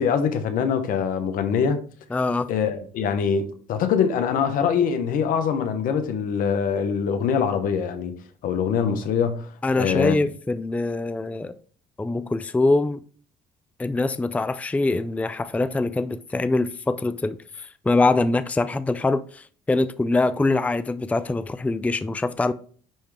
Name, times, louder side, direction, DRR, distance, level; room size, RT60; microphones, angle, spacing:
voice 1, 0.0-1.8 2.5-8.1 8.4-9.5 9.8-10.2, left 7 dB, 70° left, 1.2 m, -23 dB
voice 2, 2.1-2.5 9.6-11.5 12.0-13.0 13.8-22.5, left 2 dB, 10° left, 0.4 m, -24 dB
10.0 x 3.5 x 3.3 m
supercardioid pair, 80°, 15 cm